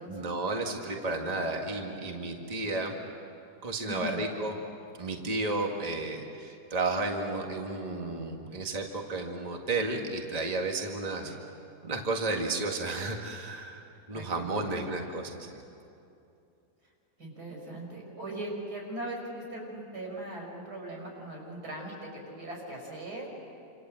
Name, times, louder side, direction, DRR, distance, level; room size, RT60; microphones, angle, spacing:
voice 1, 0.1-3.0 3.6-4.6 5.0-11.3 11.8-13.8 14.1-15.6, right 2 dB, 25° right, 2 dB, 1.9 m, -32 dB
voice 2, 3.8-4.2 11.2-11.4 14.1-14.9 17.2-23.3, right 1 dB, 80° right, -1 dB, 6.8 m, -40 dB
28.0 x 27.0 x 7.7 m, 2.7 s
omnidirectional pair, 1.7 m